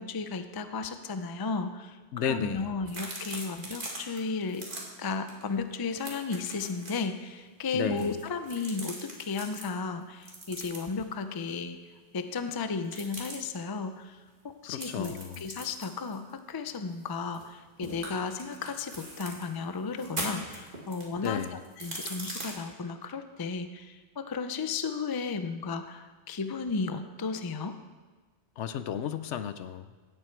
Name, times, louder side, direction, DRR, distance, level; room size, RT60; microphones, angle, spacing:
voice 1, 0.0-4.7 5.0-11.8 12.1-14.2 14.4-27.8, left 4 dB, 30° left, 9 dB, 0.4 m, -34 dB
voice 2, 2.1-2.7 7.7-8.1 14.7-15.4 21.2-21.6 28.6-29.9, left 8 dB, 75° left, 11 dB, 0.9 m, -33 dB
sound 1, 2.9-4.2 4.5-4.8 5.3-5.4 5.7-7.0 7.8-9.7 10.2-11.0 12.8-13.4 14.8-17.5 17.8-19.5 19.9-22.5, right 1 dB, 45° right, 2.1 m, -41 dB
16.5 x 7.8 x 4.6 m, 1.4 s
omnidirectional pair, 1.2 m